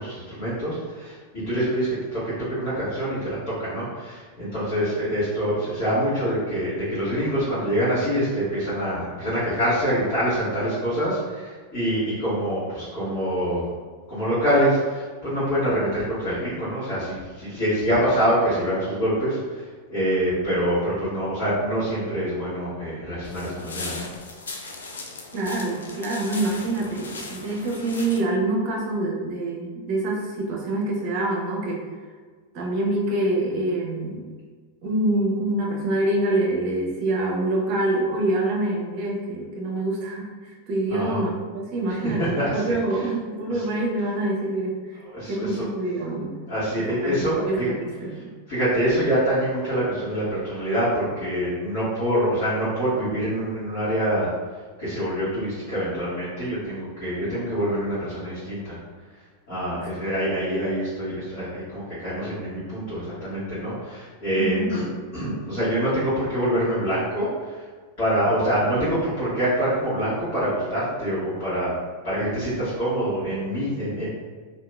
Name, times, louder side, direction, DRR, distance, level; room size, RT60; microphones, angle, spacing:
voice 1, 0.0-13.7 14.1-24.1 40.9-41.2 41.9-43.1 43.5-43.7 45.0-45.7 46.5-47.7 48.5-54.3 54.8-58.8 59.5-64.8 65.1-67.6 68.0-71.8 72.0-74.1, equal, 50° left, -13 dB, 1.4 m, -25 dB
sound 1, 23.2-28.2, left 3 dB, 70° left, 0.4 m, -38 dB
voice 2, 25.3-31.8 32.5-34.3 34.8-44.8 45.2-46.3 47.0-48.3 64.4-64.7, right 2 dB, 40° right, -2 dB, 0.7 m, -26 dB
2.9 x 2.8 x 2.2 m, 1.5 s
figure-of-eight pair, 90°, 0 cm